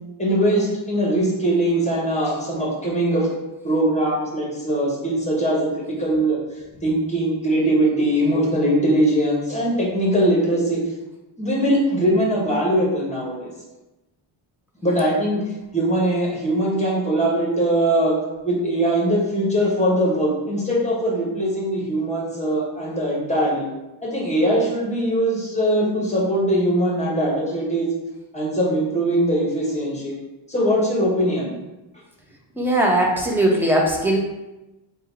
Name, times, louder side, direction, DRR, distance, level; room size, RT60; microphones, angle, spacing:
voice 1, 0.2-3.3 3.6-6.4 6.8-10.8 11.4-13.5 14.8-15.4 15.7-18.1 18.4-23.7 24.0-27.9 28.3-30.1 30.5-31.5, right 1 dB, 15° left, -3 dB, 1.1 m, -21 dB
voice 2, 32.6-34.2, right 1 dB, 5° right, -2 dB, 0.7 m, -19 dB
3.8 x 2.4 x 4.5 m, 1.0 s
cardioid pair, 120°, 50 cm